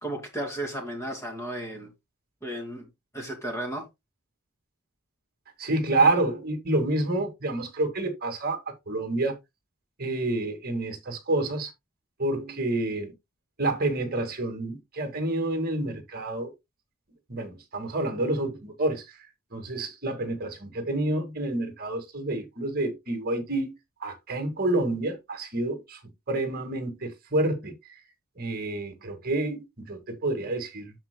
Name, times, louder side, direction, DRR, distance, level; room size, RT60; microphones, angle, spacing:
voice 1, 0.0-1.9 2.4-2.9 3.1-3.9, right 1 dB, 15° left, 2.3 m, -34 dB
voice 2, 5.6-9.4 10.0-11.7 12.2-13.1 13.6-16.5 17.3-19.2 19.5-23.7 24.0-26.0 26.3-28.0 28.4-30.9, right 2 dB, 40° right, 1.9 m, -28 dB
13.5 x 4.5 x 2.2 m
head